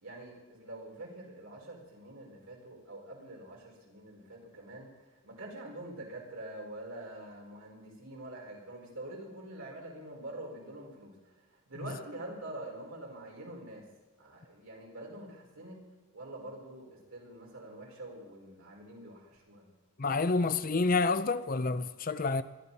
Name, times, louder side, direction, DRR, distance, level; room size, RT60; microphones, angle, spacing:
voice 1, 0.0-4.9 5.2-13.9 14.2-15.8 16.1-19.7, right 1 dB, 80° right, 5.0 m, -45 dB
voice 2, 20.0-22.4, left 3 dB, 40° left, 0.6 m, -28 dB
21.0 x 13.5 x 4.2 m
head